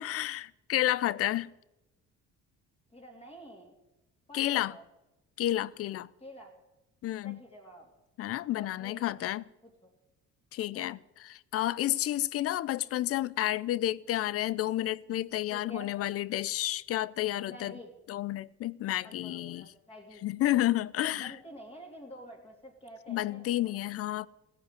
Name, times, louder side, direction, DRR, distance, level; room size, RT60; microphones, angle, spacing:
voice 1, 0.0-1.5 4.3-4.7 5.4-6.1 7.0-7.4 8.2-9.4 10.5-17.8 18.1-19.6 20.2-21.3 23.1-24.3, left 14 dB, 50° left, 0.5 m, -31 dB
voice 2, 2.9-3.8 4.3-4.8 6.2-6.5 7.2-7.9 8.5-9.2 9.6-9.7 10.7-11.0 15.5-15.9 17.5-17.9 19.0-20.3 21.2-23.8, equal, 20° left, 3.1 m, -49 dB
17.0 x 9.9 x 8.3 m
cardioid pair, 165°, 29 cm